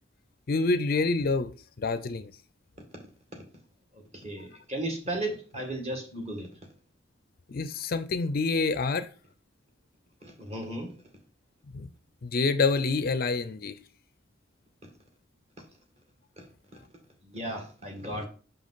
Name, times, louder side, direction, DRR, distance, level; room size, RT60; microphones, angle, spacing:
voice 1, 0.5-1.5 1.8-2.3 7.5-9.1 11.7-11.9 12.2-13.8, left 3 dB, 50° left, 0.5 m, -27 dB
voice 2, 3.9-6.5 10.2-10.9 16.4-16.5 17.2-18.3, right 1 dB, 35° right, 1.7 m, -35 dB
6.0 x 5.1 x 4.0 m
head